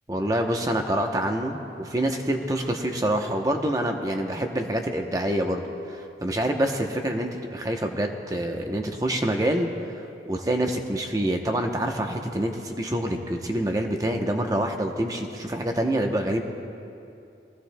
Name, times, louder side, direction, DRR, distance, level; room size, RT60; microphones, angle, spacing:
voice 1, 0.1-9.7 10.3-16.5, right 1 dB, 20° right, 3 dB, 0.8 m, -26 dB
22.0 x 15.5 x 2.2 m, 2.7 s
head